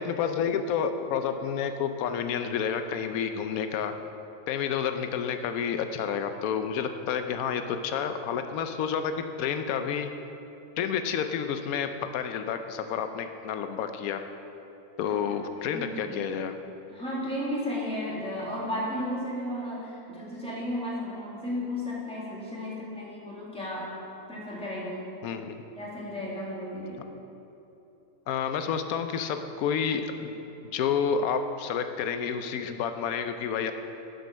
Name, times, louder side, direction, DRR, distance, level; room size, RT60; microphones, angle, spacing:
voice 1, 0.0-3.9 4.5-10.1 10.8-14.2 15.0-16.5 25.2-25.6 28.3-30.3 30.7-33.7, left 7 dB, 75° left, 8 dB, 1.0 m, -30 dB
voice 2, 15.0-16.3 16.9-23.9 24.3-25.1 25.7-27.0, left 1 dB, 5° left, -7 dB, 1.6 m, -34 dB
7.6 x 5.3 x 6.1 m, 3.0 s
omnidirectional pair, 1.5 m